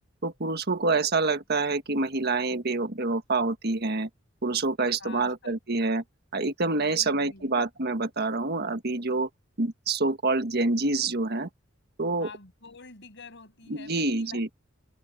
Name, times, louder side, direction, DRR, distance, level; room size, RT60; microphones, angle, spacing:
voice 1, 0.2-4.1 4.4-6.0 6.3-9.3 9.6-11.5 12.0-12.3 13.8-14.5, right 3 dB, 55° right, 1.6 m, -27 dB
voice 2, 5.0-5.5 6.7-7.5 12.2-14.4, left 3 dB, 65° left, 6.6 m, -47 dB
head